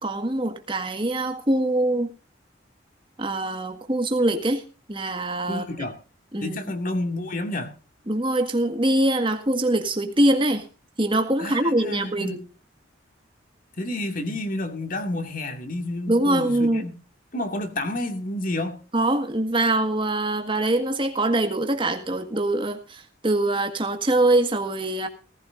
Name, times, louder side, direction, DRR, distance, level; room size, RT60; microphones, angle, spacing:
voice 1, 0.0-2.1 3.2-4.6 4.9-5.6 6.3-6.6 8.1-10.6 11.0-12.4 16.1-16.8 18.9-25.1, right 1 dB, 25° right, 6 dB, 1.8 m, -23 dB
voice 2, 5.5-6.0 6.4-7.7 11.4-12.4 13.8-16.9 17.3-18.8, left 1 dB, 45° left, 6 dB, 2.3 m, -30 dB
18.5 x 15.5 x 2.6 m, 0.34 s
head